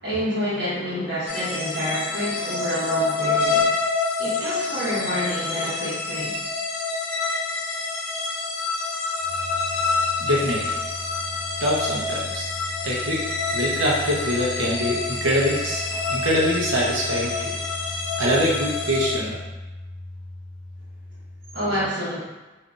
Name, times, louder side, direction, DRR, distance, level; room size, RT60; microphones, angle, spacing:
voice 1, 0.0-3.7 4.2-6.3 21.5-22.2, equal, 65° right, -10 dB, 1.2 m, -28 dB
sound 1, 1.3-19.2, left 3 dB, 80° left, 0.5 m, -27 dB
voice 2, 10.2-10.7 11.6-12.5 12.8-13.2 13.5-17.6 18.2-19.4, equal, 85° right, -3 dB, 0.8 m, -24 dB
3.8 x 2.6 x 2.4 m, 1.1 s
head